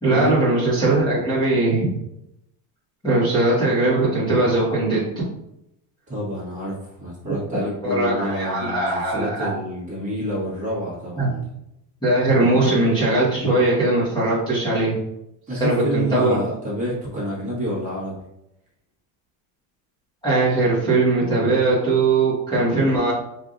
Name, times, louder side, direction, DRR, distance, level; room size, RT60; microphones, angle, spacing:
voice 1, 0.0-1.9 3.0-5.0 7.8-9.5 11.2-11.3 12.0-14.9 15.6-16.5 20.2-23.1, right 2 dB, 10° left, -10 dB, 1.2 m, -20 dB
voice 2, 6.1-11.4 15.5-18.2, equal, 15° right, -8 dB, 1.4 m, -28 dB
4.7 x 2.6 x 2.5 m, 0.82 s
cardioid pair, 170°, 43 cm